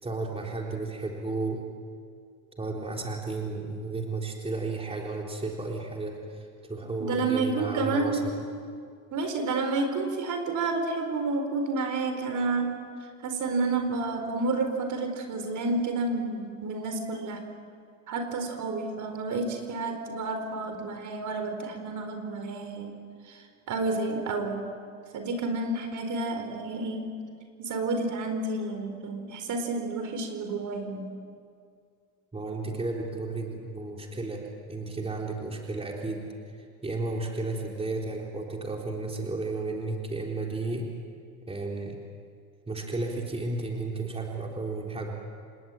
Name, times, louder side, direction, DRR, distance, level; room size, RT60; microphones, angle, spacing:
voice 1, 0.0-1.6 2.6-8.4 32.3-34.4 34.7-36.3 36.8-40.9 41.5-42.0 42.7-45.1, right 3 dB, 15° right, 0 dB, 4.0 m, -33 dB
voice 2, 7.0-8.2 9.1-12.7 13.2-17.4 18.1-23.0 23.3-24.7 25.1-27.2 27.6-31.1, right 3 dB, 45° right, 6 dB, 4.5 m, -30 dB
28.5 x 19.0 x 9.2 m, 2.2 s
supercardioid pair, 100°, 42 cm